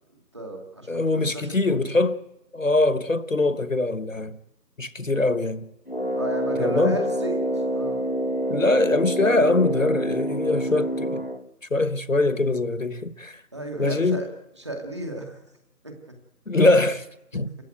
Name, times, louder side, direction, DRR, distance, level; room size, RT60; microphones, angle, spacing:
voice 1, 0.3-1.8 6.2-8.0 13.5-14.3 14.6-15.4 15.8-15.9 17.3-17.4, right 1 dB, 15° right, 2.2 m, -34 dB
voice 2, 0.9-2.2 2.5-4.4 4.8-5.7 6.6-7.0 8.5-11.2 11.7-13.4 13.8-14.2 16.5-17.1 17.3-17.5, left 2 dB, 50° left, 1.3 m, -22 dB
Brass instrument, 5.9-11.5, right 1 dB, 35° left, 0.9 m, -27 dB
29.0 x 15.5 x 9.3 m
figure-of-eight pair, 175°, 50 cm